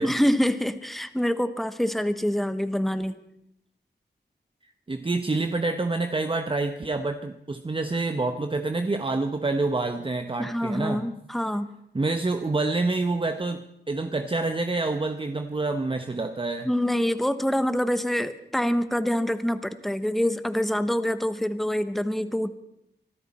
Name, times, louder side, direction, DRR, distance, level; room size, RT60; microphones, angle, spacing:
voice 1, 0.0-3.2 10.4-11.7 16.6-22.5, equal, ahead, 11 dB, 1.0 m, -26 dB
voice 2, 4.6-11.1 11.9-16.7, right 3 dB, 30° right, 7 dB, 0.9 m, -27 dB
24.5 x 12.5 x 4.3 m, 0.81 s
wide cardioid pair, 70°, 19 cm